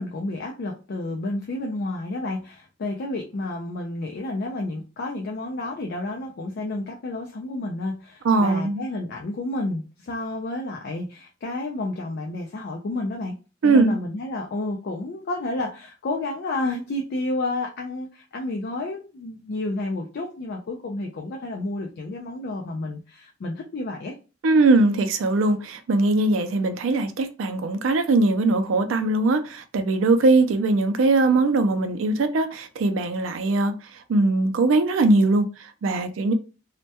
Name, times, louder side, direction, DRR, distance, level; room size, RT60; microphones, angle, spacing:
voice 1, 0.0-13.4 13.6-24.1, left 2 dB, 55° left, 0.4 m, -30 dB
voice 2, 8.2-8.8 13.6-14.0 24.4-33.7 34.1-36.3, right 2 dB, 80° right, 0.4 m, -20 dB
2.2 x 2.1 x 2.7 m
head